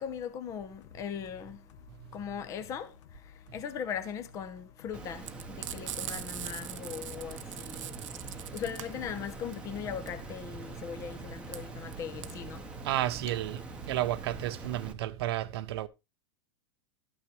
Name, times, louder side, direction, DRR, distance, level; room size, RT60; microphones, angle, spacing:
voice 1, 0.0-1.8 2.1-12.7, left 8 dB, 20° left, 0.8 m, -39 dB
sound 1, 0.8-14.9, left 6 dB, 75° left, 1.2 m, -56 dB
Water, 4.9-14.9, right 3 dB, 5° right, 1.1 m, -44 dB
Frying (food), 5.2-14.0, right 12 dB, 80° right, 0.9 m, -42 dB
voice 2, 12.8-13.6 13.9-15.9, right 14 dB, 55° right, 0.8 m, -31 dB
13.0 x 9.4 x 3.2 m
supercardioid pair, 170°, 16 cm